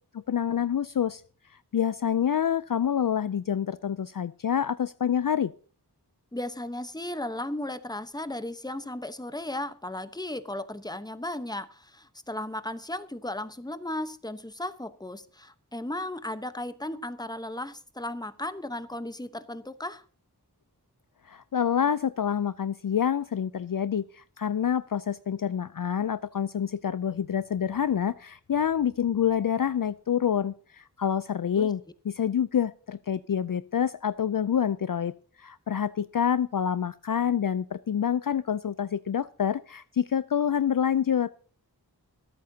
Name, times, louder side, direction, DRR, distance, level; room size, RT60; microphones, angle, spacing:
voice 1, 0.3-1.2 1.7-5.5 21.3-41.3, left 8 dB, 60° left, 0.4 m, -27 dB
voice 2, 6.3-20.0 31.6-31.7, left 1 dB, 10° left, 1.0 m, -35 dB
24.5 x 8.6 x 2.8 m
wide cardioid pair, 50°, 39 cm